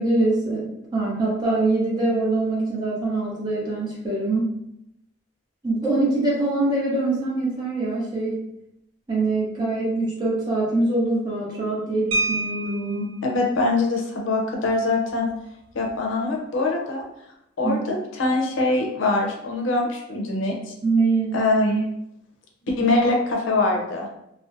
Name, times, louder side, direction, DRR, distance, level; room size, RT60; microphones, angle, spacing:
voice 1, 0.0-4.5 5.6-8.4 9.1-13.1 17.6-17.8 20.8-21.4, right 2 dB, 20° right, -6 dB, 0.8 m, -23 dB
sound 1, 12.1-13.2 14.6-14.8 15.1-15.3 15.7-16.0, right 2 dB, 70° right, 0.4 m, -27 dB
voice 2, 13.2-15.3 15.7-17.0 17.6-20.7 21.3-21.8 22.6-24.1, left 2 dB, 70° left, 0 dB, 0.5 m, -23 dB
2.5 x 2.1 x 2.5 m, 0.80 s
head